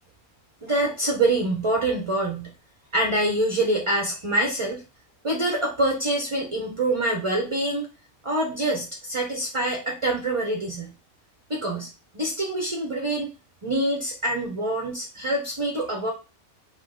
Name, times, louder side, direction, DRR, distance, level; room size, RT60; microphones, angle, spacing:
voice 1, 0.6-2.5 2.9-4.8 5.2-7.9 8.2-10.9 11.5-13.3 13.6-16.1, right 1 dB, 30° right, 1 dB, 0.6 m, -25 dB
4.5 x 2.8 x 3.8 m, 0.31 s
omnidirectional pair, 1.6 m